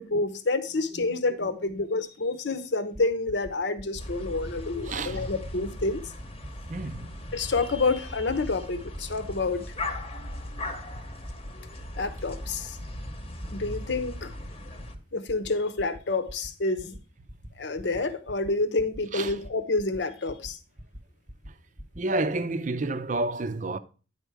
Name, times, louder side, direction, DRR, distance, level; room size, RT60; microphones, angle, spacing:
voice 1, 0.0-6.0 7.3-9.6 12.0-12.8 13.5-14.3 15.1-17.0 17.6-20.6, left 3 dB, 75° left, 0.9 m, -28 dB
voice 2, 0.9-1.6 4.8-5.3 6.7-7.3 10.1-10.7 19.1-19.4 21.5-21.6 22.0-23.8, right 2 dB, 45° right, 0.5 m, -31 dB
sound 1, 2.9-3.0 3.3-3.5 3.8-4.0 4.3-4.5 4.8-5.0 5.3-5.5 5.8-6.0 6.3-6.5 6.8-7.0 7.3-7.5 7.8-8.0 8.3-8.5 8.8-9.0 9.3-9.5 9.8-10.0 10.3-10.5 10.8-11.0 11.3-11.5 11.8-12.0 12.3-12.5 12.8-13.0 13.3-13.5 13.8-14.0 14.3-14.5 14.8-15.0 15.3-15.5 15.8-16.0 16.3-16.5 16.8-17.0 17.3-17.5 17.8-18.0 18.3-18.5 18.8-19.0 19.3-19.5 19.8-20.0 20.3-20.5 20.8-21.0 21.3-21.5 21.8-22.0, equal, 20° right, 0.8 m, -42 dB
sound 2, 4.0-14.9, left 1 dB, 30° left, 0.9 m, -38 dB
10.0 x 4.5 x 4.7 m
head